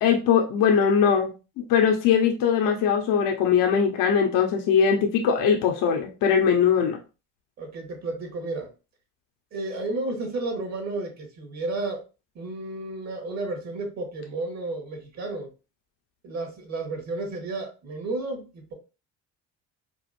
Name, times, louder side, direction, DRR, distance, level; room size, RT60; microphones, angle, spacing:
voice 1, 0.0-1.3 1.7-7.0, left 7 dB, 65° left, 2 dB, 0.9 m, -21 dB
voice 2, 7.6-8.7 9.5-12.0 12.4-15.5 16.2-18.7, right 2 dB, 50° right, 2 dB, 2.0 m, -32 dB
4.7 x 2.5 x 2.5 m, 0.31 s
supercardioid pair, 95°, 34 cm